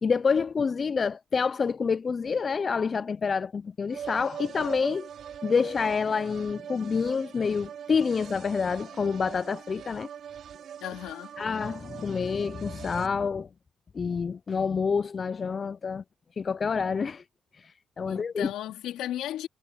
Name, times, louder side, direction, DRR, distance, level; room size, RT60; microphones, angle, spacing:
voice 1, 0.0-5.1 5.4-10.1 11.4-13.5 13.9-16.0 16.4-17.2 17.6-18.5, left 5 dB, 40° left, 0.5 m, -28 dB
sound 1, 3.9-13.1, right 8 dB, 65° right, 2.6 m, -42 dB
voice 2, 10.8-11.3 18.0-19.5, left 12 dB, 85° left, 3.0 m, -35 dB
cardioid pair, 90°, 0 cm